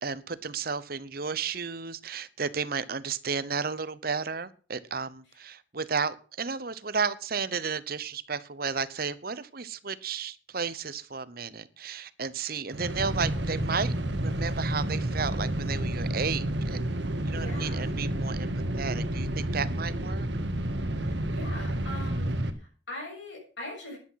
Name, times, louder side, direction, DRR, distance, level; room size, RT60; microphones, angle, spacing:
voice 1, 0.0-16.9 17.2-18.5 18.8-20.3, right 5 dB, 50° right, 0.9 m, -33 dB
sound 1, 12.7-22.5, right 1 dB, 65° right, 1.7 m, -30 dB
voice 2, 17.3-17.9 21.0-22.3 22.6-24.0, left 1 dB, 70° left, 7.2 m, -41 dB
12.5 x 11.0 x 5.8 m
head